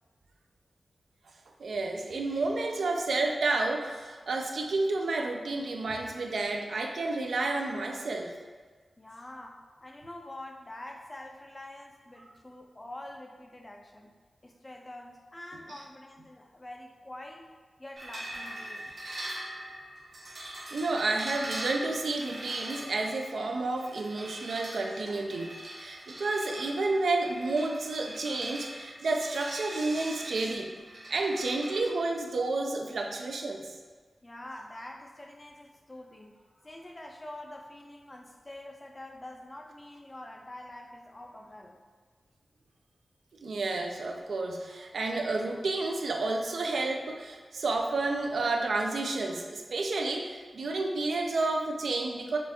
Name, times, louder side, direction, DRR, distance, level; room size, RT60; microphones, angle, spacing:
voice 1, 1.6-8.3 20.7-30.7 31.1-33.7 43.4-52.4, right 3 dB, 85° right, 2 dB, 0.4 m, -30 dB
voice 2, 9.0-14.1 14.4-17.5 17.8-18.9 22.0-22.1 34.2-41.8, left 1 dB, 25° left, 2 dB, 0.3 m, -46 dB
sound 1, 18.0-31.8, right 1 dB, 65° right, 0.8 m, -42 dB
6.1 x 2.4 x 2.8 m, 1.5 s
wide cardioid pair, 110°, 0 cm